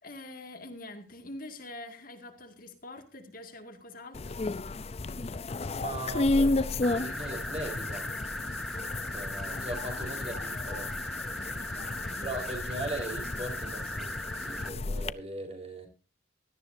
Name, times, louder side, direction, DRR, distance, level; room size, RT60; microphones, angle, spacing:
voice 1, 0.0-4.4 11.6-12.3, left 2 dB, 50° left, 2.1 m, -45 dB
sound 1, 4.1-15.1, left 2 dB, 35° left, 0.5 m, -33 dB
voice 2, 5.8-8.2 9.1-11.0 12.2-15.9, right 1 dB, 35° right, 4.3 m, -39 dB
sound 2, 6.8-14.7, equal, ahead, 0.7 m, -38 dB
17.5 x 13.0 x 2.7 m
head